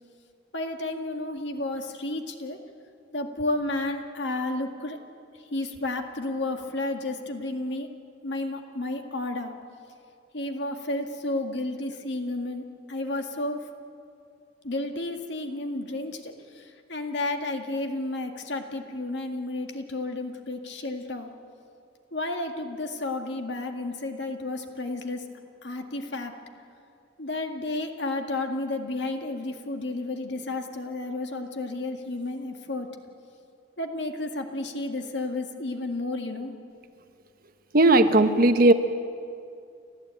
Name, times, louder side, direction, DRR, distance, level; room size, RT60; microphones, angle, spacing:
voice 1, 0.5-2.6 3.1-5.0 5.5-7.9 8.2-9.5 10.3-13.7 14.6-21.3 22.1-25.2 25.6-26.3 27.2-32.9 33.8-36.5, left 2 dB, 65° left, 5 dB, 1.9 m, -32 dB
voice 2, 37.7-38.7, right 2 dB, 50° right, 8 dB, 1.1 m, -17 dB
30.0 x 13.5 x 9.0 m, 2.5 s
head